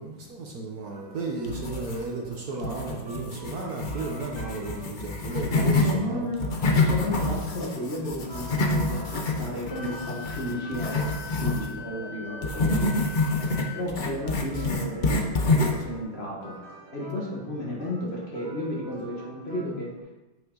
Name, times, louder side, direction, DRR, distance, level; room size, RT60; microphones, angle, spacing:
voice 1, 0.0-6.3 13.4-13.6, right 3 dB, 55° right, -1 dB, 1.4 m, -34 dB
sound 1, 0.9-20.0, right 1 dB, 15° right, 1.7 m, -48 dB
sound 2, 1.4-2.3 2.6-6.0 6.3-11.7 12.4-15.9, left 2 dB, 60° left, 0.5 m, -27 dB
voice 2, 5.6-6.5 6.8-11.1 11.4-12.9 13.7-16.6 16.9-19.9, left 1 dB, 35° left, -4 dB, 1.6 m, -33 dB
Wind instrument woodwind instrument, 9.7-13.9, left 5 dB, 85° left, 1.4 m, -41 dB
9.2 x 5.5 x 3.9 m, 1.1 s
omnidirectional pair, 2.1 m